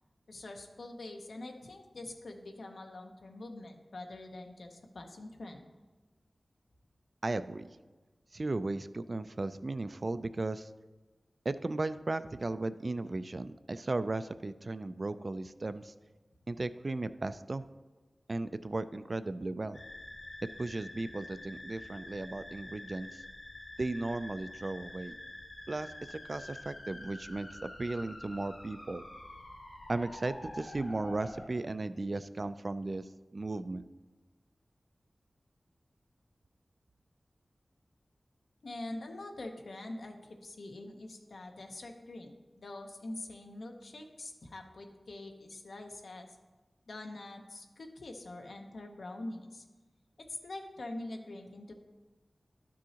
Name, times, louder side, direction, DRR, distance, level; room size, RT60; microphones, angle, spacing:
voice 1, 0.3-5.7 38.6-46.3 46.9-49.6 50.3-51.7, left 2 dB, 85° left, 3 dB, 0.9 m, -44 dB
voice 2, 7.2-7.7 8.3-10.7 11.5-15.9 16.5-17.6 18.3-19.8 20.6-23.2 23.8-25.1 25.7-29.0 29.9-33.0 33.3-33.8, right 2 dB, 45° right, 12 dB, 0.3 m, -36 dB
sound 1, 19.7-31.5, left 1 dB, 65° left, 1.8 m, -47 dB
12.0 x 6.2 x 2.9 m, 1.3 s
wide cardioid pair, 90°, 0 cm